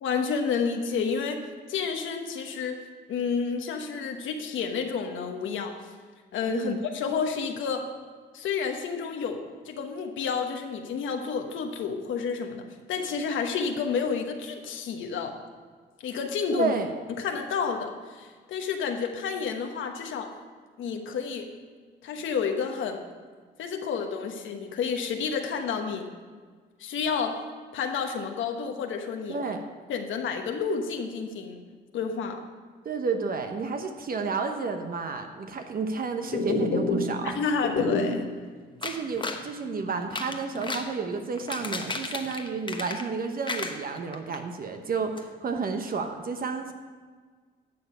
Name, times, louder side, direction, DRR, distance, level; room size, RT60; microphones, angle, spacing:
voice 1, 0.0-2.8 3.1-5.7 6.3-7.9 8.3-15.4 16.0-16.7 17.2-20.3 20.8-21.6 22.0-23.0 23.6-26.1 26.8-27.4 27.7-29.4 29.9-31.6 31.9-32.4 37.2-38.3, left 5 dB, 75° left, 4 dB, 1.2 m, -30 dB
voice 2, 6.5-6.8 16.5-16.9 29.3-29.6 32.8-37.4 38.8-46.7, right 4 dB, 45° right, 6 dB, 1.0 m, -31 dB
sound 1, 36.2-37.3 37.5-38.3 38.8-38.9 39.2-39.3 39.9-41.3 41.6-42.2, left 3 dB, 55° left, 2.2 m, -29 dB
sound 2, 38.8-39.5 40.0-40.9 41.3-43.2 43.4-44.4 44.7-44.8 45.2-45.3, left 3 dB, 25° left, 1.0 m, -34 dB
11.5 x 7.0 x 5.6 m, 1.5 s
cardioid pair, 90°, 20 cm